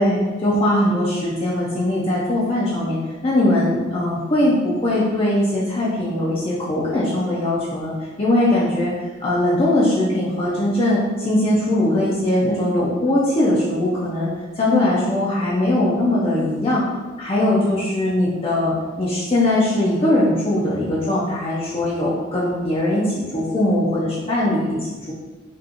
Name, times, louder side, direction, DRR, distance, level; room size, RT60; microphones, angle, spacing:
voice 1, 0.0-7.9 8.2-8.9 9.2-14.3 14.6-16.8 17.2-24.8, left 1 dB, 25° left, -7 dB, 0.5 m, -20 dB
5.1 x 2.4 x 2.8 m, 1.3 s
head